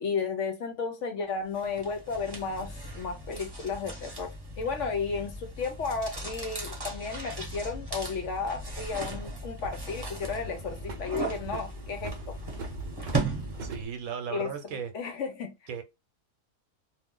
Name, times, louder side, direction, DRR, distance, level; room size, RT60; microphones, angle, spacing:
voice 1, 0.0-4.3 4.6-12.1 14.3-14.5 14.9-15.5, left 5 dB, 65° left, 0.9 m, -33 dB
sound 1, 1.5-13.9, right 2 dB, 20° right, 0.8 m, -37 dB
sound 2, 3.1-3.2 4.8-6.1 8.3-9.3 9.6-13.9, right 3 dB, 55° right, 0.5 m, -43 dB
voice 2, 13.6-14.9 15.7-15.8, right 7 dB, 70° right, 1.1 m, -36 dB
2.5 x 2.5 x 3.6 m
omnidirectional pair, 1.6 m